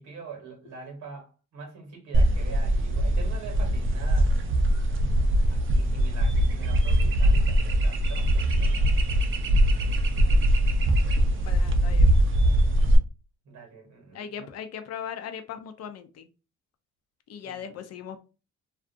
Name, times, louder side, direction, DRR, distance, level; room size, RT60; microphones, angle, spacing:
voice 1, 0.0-4.4 5.5-9.0 13.4-14.5 17.4-17.8, right 5 dB, 75° right, 1.2 m, -44 dB
sound 1, 2.1-13.0, right 1 dB, 45° right, 0.5 m, -22 dB
voice 2, 10.1-10.5 11.4-12.1 14.1-16.3 17.3-18.2, left 8 dB, 55° left, 0.5 m, -39 dB
2.4 x 2.4 x 2.5 m
cardioid pair, 90°, 30 cm